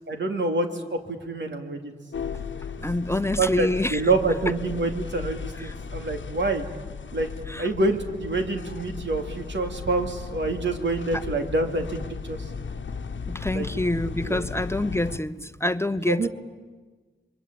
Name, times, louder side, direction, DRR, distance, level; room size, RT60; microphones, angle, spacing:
voice 1, 0.1-1.9 2.8-6.7 7.1-7.3 7.6-12.0 12.2-12.4 13.5-13.7 14.2-14.4 15.4-15.5 16.1-16.3, right 2 dB, 75° right, 4 dB, 2.8 m, -27 dB
sound 1, 2.1-15.2, left 5 dB, 80° left, 1.2 m, -36 dB
voice 2, 2.8-4.0 5.6-5.7 7.5-7.7 13.3-16.3, left 1 dB, 15° left, 12 dB, 0.9 m, -26 dB
27.5 x 22.5 x 8.9 m, 1.3 s
cardioid pair, 45°, 19 cm